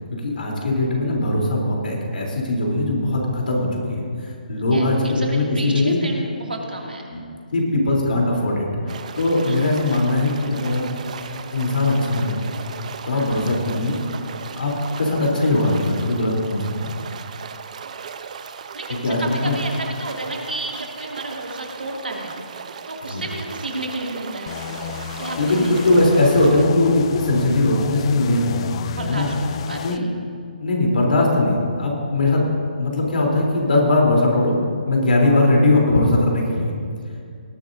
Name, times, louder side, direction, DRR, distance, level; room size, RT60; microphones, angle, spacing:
voice 1, 0.1-6.0 7.1-7.2 7.5-10.9 11.5-12.4 13.0-14.0 14.6-16.7 18.9-19.6 23.0-23.2 25.4-28.7 29.1-29.3 29.8-30.0 30.6-32.5 32.8-34.6 34.9-36.7, left 2 dB, 70° left, -1 dB, 3.5 m, -20 dB
voice 2, 4.7-7.1 9.4-9.6 13.1-13.4 18.7-22.4 22.9-24.5 25.2-25.7 28.9-30.1, right 2 dB, 80° right, 0 dB, 2.5 m, -31 dB
sound 1, 8.9-26.6, right 6 dB, 50° right, 0.7 m, -36 dB
sound 2, 24.5-30.0, left 9 dB, 35° left, 0.4 m, -33 dB
19.5 x 11.5 x 2.7 m, 2.3 s
figure-of-eight pair, 145°, 5 cm